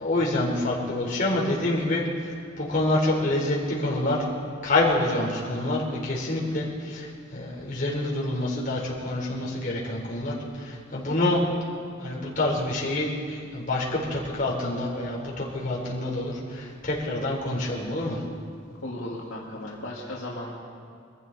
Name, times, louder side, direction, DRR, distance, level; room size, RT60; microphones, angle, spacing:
voice 1, 0.0-4.2 4.6-11.4 12.0-18.2, left 2 dB, 40° left, -4 dB, 4.0 m, -27 dB
voice 2, 18.8-20.5, left 1 dB, 80° left, -4 dB, 2.1 m, -36 dB
23.5 x 14.5 x 4.2 m, 2.2 s
head